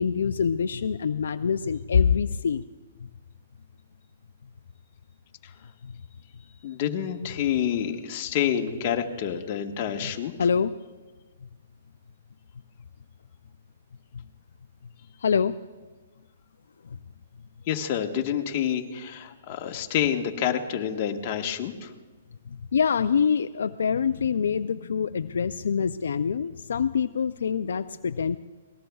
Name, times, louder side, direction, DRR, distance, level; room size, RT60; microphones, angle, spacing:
voice 1, 0.0-2.6 5.8-5.9 10.4-10.7 15.2-15.6 22.5-28.4, left 6 dB, 80° left, 11 dB, 0.4 m, -25 dB
voice 2, 6.6-10.3 17.7-21.9, left 9 dB, 40° left, 3 dB, 1.4 m, -28 dB
26.5 x 19.5 x 2.3 m, 1.3 s
hypercardioid pair, 150°, 0 cm